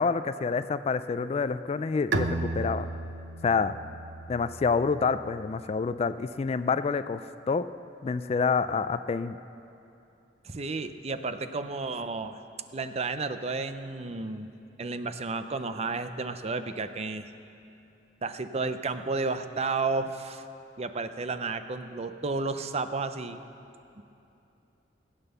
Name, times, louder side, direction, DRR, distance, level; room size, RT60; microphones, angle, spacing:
voice 1, 0.0-2.9 3.4-3.8 4.3-7.7 8.0-9.4, left 5 dB, 35° left, 13 dB, 0.3 m, -27 dB
Bowed string instrument, 2.1-5.6, right 3 dB, 75° right, 0.7 m, -34 dB
voice 2, 10.4-12.4 12.7-14.5 14.8-17.3 18.2-20.4 20.8-23.4 24.0-24.1, right 3 dB, 35° right, 10 dB, 0.6 m, -32 dB
17.5 x 9.0 x 6.8 m, 2.8 s
head